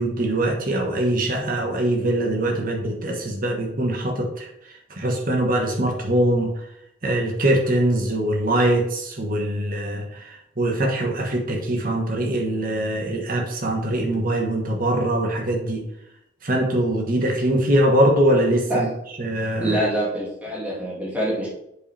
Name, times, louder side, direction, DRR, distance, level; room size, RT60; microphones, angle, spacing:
voice 1, 0.0-4.5 4.9-6.5 7.0-15.8 16.4-18.9 19.2-19.8, right 1 dB, 45° right, 2 dB, 1.4 m, -22 dB
voice 2, 19.6-21.5, right 1 dB, 10° right, -6 dB, 2.4 m, -25 dB
8.2 x 5.2 x 3.4 m, 0.80 s
head